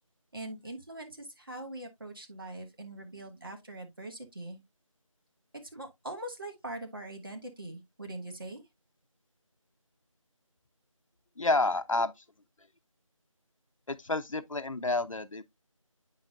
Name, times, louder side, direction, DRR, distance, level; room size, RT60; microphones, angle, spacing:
voice 1, 0.3-4.6 5.7-8.6, right 1 dB, 40° right, 1.5 m, -42 dB
voice 2, 11.4-12.2 13.9-15.4, left 2 dB, 70° left, 0.7 m, -29 dB
8.3 x 5.6 x 2.5 m
figure-of-eight pair, 175°, 18 cm